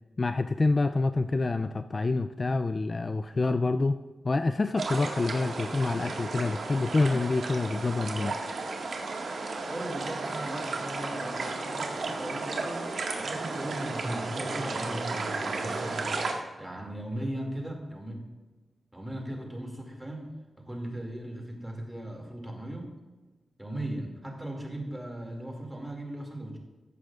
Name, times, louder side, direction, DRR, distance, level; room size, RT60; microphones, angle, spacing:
voice 1, 0.2-8.4, left 3 dB, 30° left, 10 dB, 0.3 m, -27 dB
sound 1, 4.8-16.3, right 3 dB, 75° right, 1.7 m, -34 dB
voice 2, 9.7-18.3 18.9-20.3 20.6-22.9 23.6-26.6, right 1 dB, 10° right, 0 dB, 2.3 m, -38 dB
15.0 x 11.5 x 2.4 m, 1.2 s
wide cardioid pair, 145°, 0 cm